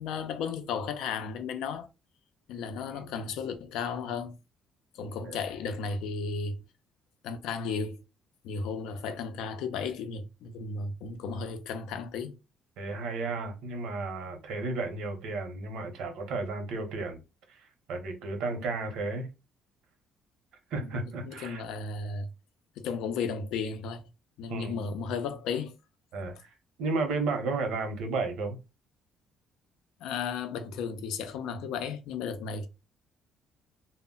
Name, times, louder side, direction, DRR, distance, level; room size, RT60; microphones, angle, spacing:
voice 1, 0.0-1.9 2.5-4.4 4.9-6.6 7.2-8.0 8.4-12.3 18.5-18.6 20.8-22.3 22.8-24.1 24.4-25.7 30.0-32.7, left 5 dB, 85° left, 0.4 m, -34 dB
voice 2, 12.8-17.2 17.5-19.3 20.7-21.6 24.5-24.8 26.1-26.5 26.8-28.6, right 3 dB, 80° right, 0.7 m, -33 dB
2.1 x 2.0 x 3.7 m
cardioid pair, 145°, 0 cm